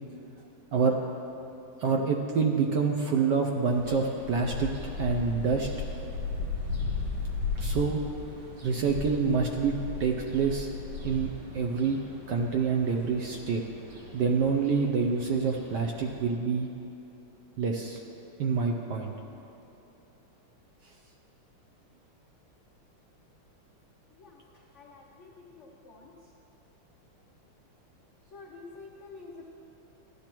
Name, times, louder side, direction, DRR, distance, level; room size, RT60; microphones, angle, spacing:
voice 1, 1.8-4.7 5.0-5.7 7.5-8.0 8.6-10.7 11.0-12.0 12.3-13.6 14.1-16.7 17.6-18.0 18.4-19.1, right 5 dB, 70° right, 2 dB, 1.1 m, -27 dB
sound 1, 3.6-16.2, left 3 dB, 85° right, 2.6 m, -37 dB
voice 2, 24.7-26.1 28.3-29.4, left 3 dB, 85° left, -2 dB, 0.6 m, -48 dB
15.0 x 11.5 x 3.0 m, 2.9 s
omnidirectional pair, 2.4 m